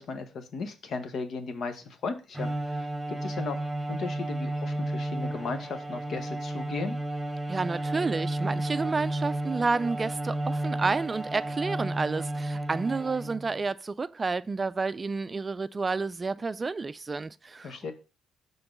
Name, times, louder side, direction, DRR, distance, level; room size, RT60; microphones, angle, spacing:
voice 1, 0.0-3.6 3.9-7.0 17.6-17.9, left 4 dB, 60° left, 1.1 m, -36 dB
Bowed string instrument, 2.3-13.6, right 1 dB, 10° right, 1.3 m, -32 dB
voice 2, 7.5-17.9, right 4 dB, 30° right, 0.4 m, -30 dB
5.9 x 3.8 x 5.3 m
cardioid pair, 90°, 0 cm